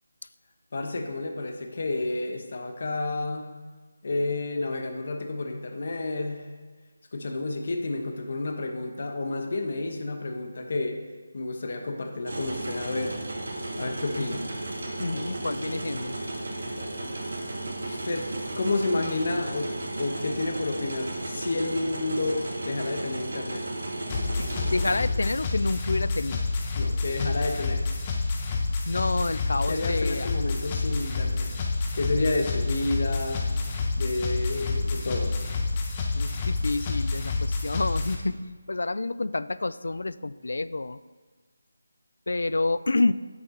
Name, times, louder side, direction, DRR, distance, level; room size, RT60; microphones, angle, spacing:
voice 1, 0.7-3.5 4.0-6.5 7.1-11.0 11.3-13.2 13.8-14.5 17.9-19.7 20.0-23.7 26.8-27.8 29.7-31.5 31.9-33.4 34.0-35.4, left 2 dB, 50° left, 4 dB, 1.0 m, -30 dB
sound 1, 12.3-25.0, right 2 dB, 65° right, 1.5 m, -34 dB
voice 2, 15.0-16.2 24.4-26.4 28.9-30.3 36.1-41.0 42.3-43.1, left 2 dB, 75° left, 16 dB, 0.3 m, -28 dB
sound 2, 24.1-38.1, left 3 dB, 25° left, 0.8 m, -28 dB
7.9 x 7.9 x 3.8 m, 1.4 s
figure-of-eight pair, 165°, 0 cm